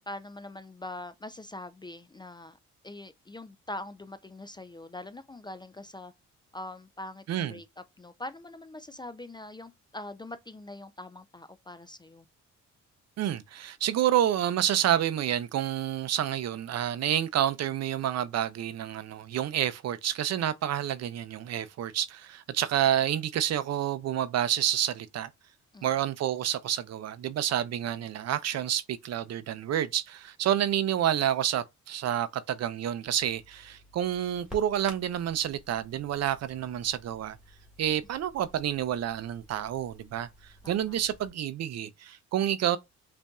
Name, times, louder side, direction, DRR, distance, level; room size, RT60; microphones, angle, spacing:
voice 1, 0.0-2.6 2.8-6.1 6.5-7.6 8.0-12.3 25.7-25.9 40.6-40.9, left 2 dB, 15° left, 0.3 m, -43 dB
voice 2, 7.3-7.6 13.2-25.3 25.8-37.4 37.8-42.8, right 11 dB, 60° right, 0.6 m, -29 dB
Crackle, 33.1-41.3, equal, 5° right, 1.7 m, -52 dB
5.3 x 2.6 x 2.3 m
cardioid pair, 90°, 30 cm